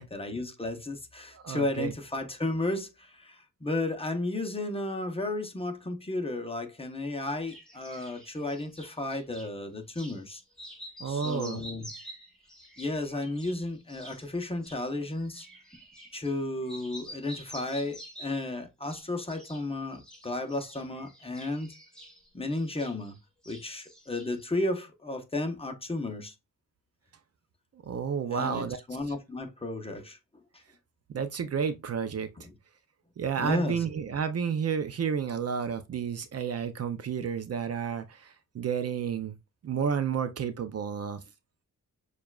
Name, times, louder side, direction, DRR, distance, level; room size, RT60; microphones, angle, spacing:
voice 1, 0.0-10.4 11.0-11.9 12.8-15.5 16.1-21.7 22.3-23.2 23.5-26.3 28.3-30.2 33.4-33.8, left 2 dB, 20° left, 0.8 m, -33 dB
voice 2, 1.3-1.9 11.0-11.6 27.8-29.1 31.1-32.3 33.2-39.4 39.6-41.2, right 7 dB, 50° right, 0.5 m, -31 dB
sound 1, 7.2-9.5 9.9-10.2 10.5-16.4 16.7-18.5 18.8-19.6 19.9-23.2 23.4-24.5, equal, ahead, 1.5 m, -48 dB
6.8 x 2.4 x 2.3 m
cardioid pair, 90°, 32 cm